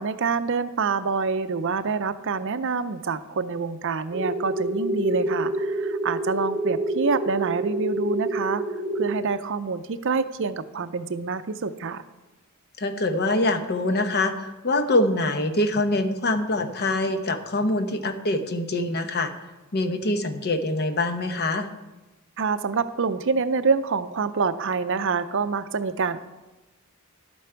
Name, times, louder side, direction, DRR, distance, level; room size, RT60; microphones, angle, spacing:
voice 1, 0.0-8.6 9.0-12.0 22.4-26.2, right 4 dB, 60° right, 12 dB, 0.5 m, -26 dB
sound 1, 4.1-9.1, right 1 dB, 15° right, 2.5 m, -27 dB
voice 2, 12.8-19.3 19.7-21.7, left 2 dB, 45° left, 8 dB, 0.9 m, -24 dB
11.5 x 8.5 x 4.5 m, 1.1 s
head